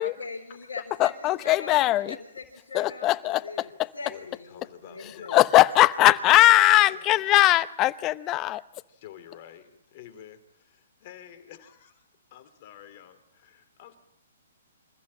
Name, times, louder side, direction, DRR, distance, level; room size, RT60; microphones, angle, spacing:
voice 1, 0.0-5.4, left 4 dB, 85° left, 4.2 m, -41 dB
voice 2, 1.0-2.2 2.7-3.9 5.3-8.6, left 16 dB, 30° left, 0.8 m, -20 dB
voice 3, 4.0-5.6 6.1-7.3 8.9-14.0, left 10 dB, 45° left, 3.0 m, -49 dB
26.5 x 15.0 x 8.8 m
hypercardioid pair, 135°, 0 cm